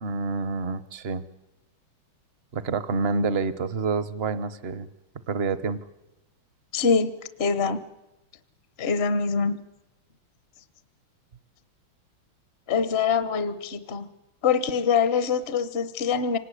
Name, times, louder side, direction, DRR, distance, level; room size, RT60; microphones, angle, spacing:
voice 1, 0.0-1.2 2.5-4.9 5.3-5.8, right 4 dB, 40° right, 15 dB, 0.9 m, -28 dB
voice 2, 6.7-7.1 7.4-7.8 8.8-9.6 12.7-14.1 14.4-16.4, left 5 dB, 40° left, 13 dB, 0.9 m, -24 dB
26.0 x 18.5 x 9.9 m, 0.97 s
omnidirectional pair, 2.2 m